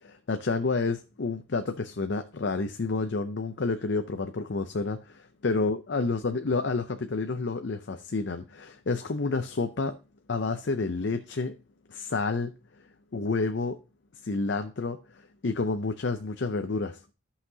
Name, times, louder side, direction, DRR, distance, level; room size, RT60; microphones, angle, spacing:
voice 1, 0.0-10.0 10.3-11.6 11.9-12.5 13.1-13.8 14.2-17.0, left 3 dB, 70° left, 0.6 m, -29 dB
13.5 x 5.8 x 2.8 m
head